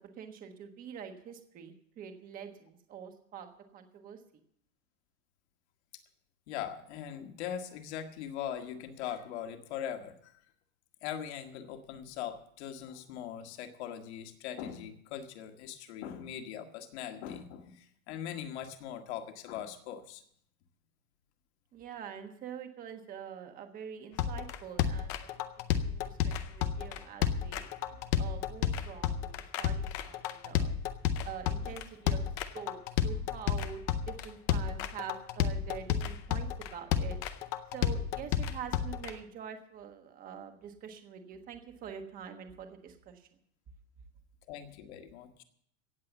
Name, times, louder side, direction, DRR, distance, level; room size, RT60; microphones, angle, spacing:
voice 1, 0.2-4.2 21.7-25.5 25.8-30.7 31.2-32.2 32.5-37.2 37.7-43.3, right 8 dB, 20° right, 6 dB, 1.4 m, -45 dB
voice 2, 6.5-10.4 11.0-20.2 44.5-45.4, left 9 dB, 50° left, 6 dB, 1.9 m, -41 dB
sound 1, 24.2-39.1, left 9 dB, 25° left, 0.6 m, -31 dB
17.5 x 7.6 x 7.2 m, 0.67 s
supercardioid pair, 175°, 43 cm